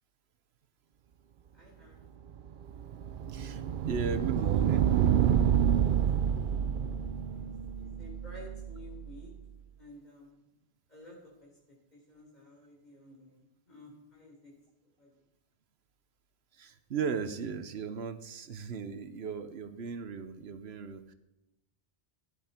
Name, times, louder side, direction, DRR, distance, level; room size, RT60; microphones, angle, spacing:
voice 1, 1.5-2.0 6.7-7.5 7.8-9.3 9.7-10.4 10.9-14.5 15.0-15.1, left 1 dB, 40° left, -2 dB, 4.4 m, -53 dB
sound 1, 2.3-9.2, right 9 dB, 60° right, 0.6 m, -28 dB
voice 2, 3.3-5.5 6.3-6.4 16.5-21.1, right 5 dB, 75° right, 10 dB, 1.1 m, -37 dB
15.5 x 9.6 x 4.4 m, 0.89 s
omnidirectional pair, 1.1 m